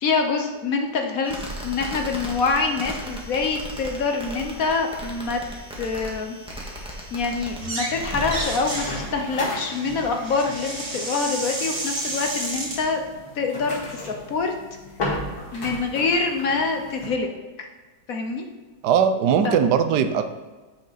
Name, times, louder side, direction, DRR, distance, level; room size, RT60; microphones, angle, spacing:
voice 1, 0.0-5.4 5.8-6.4 7.1-13.0 13.4-14.5 15.5-17.3 17.6-17.7 18.1-18.4 19.4-19.6, left 4 dB, 55° left, 4 dB, 1.1 m, -25 dB
sound 1, 1.2-8.9, equal, 5° right, 1.5 m, -36 dB
sound 2, 7.5-8.0 8.2-12.8, right 2 dB, 45° right, 2.0 m, -31 dB
sound 3, 7.9-17.1, left 1 dB, 85° left, 2.8 m, -36 dB
voice 2, 18.8-20.3, right 7 dB, 70° right, 9 dB, 1.2 m, -19 dB
9.0 x 6.5 x 4.1 m, 1.2 s
omnidirectional pair, 2.0 m